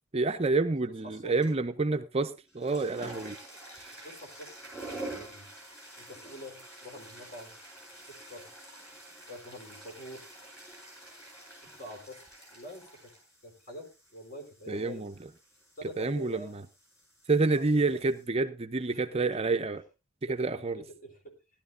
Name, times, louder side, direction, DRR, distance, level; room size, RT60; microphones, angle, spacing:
voice 1, 0.1-3.4 14.7-15.1 16.0-16.6 17.3-19.8 20.3-20.8, right 3 dB, 30° right, 0.6 m, -28 dB
voice 2, 1.0-1.4 4.0-4.7 5.0-5.5 6.0-7.5 8.1-8.5 9.3-10.3 11.8-12.2 12.5-13.1 13.4-15.1 15.8-16.6 17.5-18.1 18.9-19.4 20.3-21.3, equal, 45° left, 4.0 m, -46 dB
sound 1, 1.4-1.8 2.4-18.2, right 1 dB, 15° left, 7.3 m, -48 dB
17.5 x 12.0 x 2.6 m
head